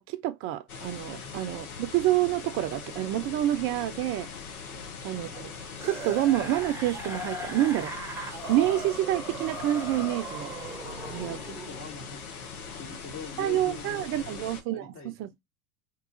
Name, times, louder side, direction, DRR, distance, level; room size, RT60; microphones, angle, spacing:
voice 1, 0.0-4.3 5.0-5.5 5.8-7.9 8.5-10.5 11.1-11.4 13.4-15.4, right 14 dB, 30° right, 0.4 m, -28 dB
sound 1, 0.7-14.6, left 5 dB, 90° left, 0.8 m, -41 dB
sound 2, 5.8-11.7 12.9-13.0, right 1 dB, 5° right, 0.8 m, -38 dB
voice 2, 10.8-12.2 12.8-14.5 14.7-15.1, left 4 dB, 30° left, 1.1 m, -43 dB
2.9 x 2.3 x 3.6 m
hypercardioid pair, 95°, 43 cm